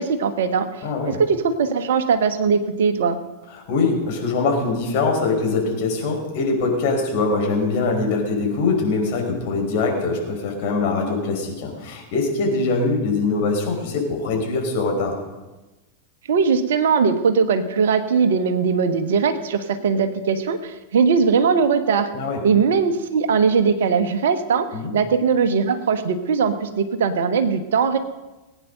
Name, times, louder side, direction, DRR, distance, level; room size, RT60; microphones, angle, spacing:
voice 1, 0.0-0.7 1.0-3.2 16.3-22.1 22.4-24.7 24.9-28.0, right 5 dB, 60° right, 10 dB, 1.1 m, -20 dB
voice 2, 0.8-1.2 3.5-15.2 22.1-22.4 24.7-24.9, left 3 dB, 50° left, 1 dB, 4.8 m, -23 dB
20.0 x 9.2 x 6.6 m, 1.1 s
figure-of-eight pair, 90°, 0 cm